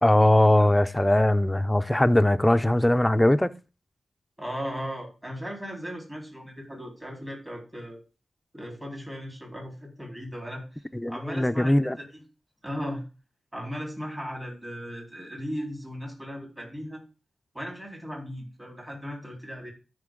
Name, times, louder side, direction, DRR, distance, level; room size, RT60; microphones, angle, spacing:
voice 1, 0.0-3.5 10.9-12.0, left 1 dB, 10° left, 0.5 m, -20 dB
voice 2, 4.4-8.0 8.5-10.6 11.1-12.2 12.6-13.0 13.5-17.0 17.5-19.7, equal, 15° right, 4.2 m, -37 dB
13.0 x 5.3 x 3.9 m
wide cardioid pair, 90°, 0 cm